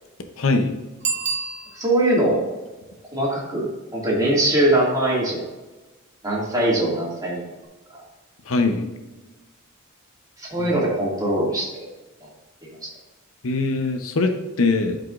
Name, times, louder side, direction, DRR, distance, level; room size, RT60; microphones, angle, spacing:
voice 1, 0.4-0.7 8.5-8.9 10.6-10.7 13.4-15.0, left 3 dB, 75° left, 6 dB, 0.8 m, -22 dB
Bicycle bell, 1.0-2.2 7.6-7.7, right 6 dB, 35° right, 1.0 m, -28 dB
voice 2, 1.7-2.4 3.1-5.4 6.2-7.5 10.4-11.9 12.8-12.9, right 1 dB, 20° right, -4 dB, 2.2 m, -22 dB
12.0 x 4.9 x 2.5 m, 1.2 s
head